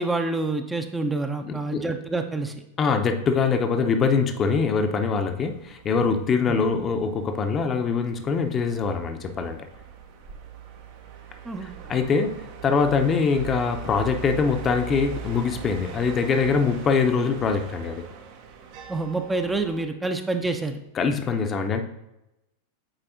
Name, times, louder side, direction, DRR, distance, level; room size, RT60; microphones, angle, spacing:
voice 1, 0.0-2.5 11.4-11.7 18.9-20.8, right 3 dB, 10° right, 6 dB, 0.5 m, -27 dB
voice 2, 1.4-1.8 2.8-9.7 11.6-18.0 20.9-21.8, left 5 dB, 30° left, 6 dB, 0.6 m, -23 dB
sound 1, 3.3-19.9, right 6 dB, 55° right, 0.7 m, -41 dB
8.8 x 4.0 x 2.6 m, 0.91 s
figure-of-eight pair, 90°, 0 cm